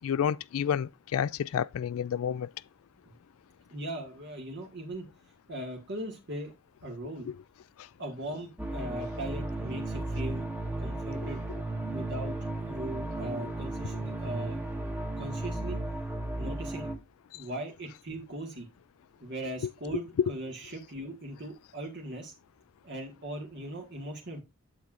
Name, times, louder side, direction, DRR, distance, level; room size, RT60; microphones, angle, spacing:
voice 1, 0.0-2.5 20.2-20.3, left 8 dB, 70° left, 0.3 m, -29 dB
voice 2, 3.7-5.1 5.5-6.5 6.8-7.3 8.0-10.5 10.8-11.5 11.9-14.6 15.2-15.8 16.4-16.9 17.3-18.7 19.2-22.3 22.8-24.4, right 1 dB, 55° right, 1.7 m, -39 dB
sound 1, 8.6-17.0, right 2 dB, 10° right, 1.3 m, -34 dB
8.6 x 7.6 x 2.5 m
head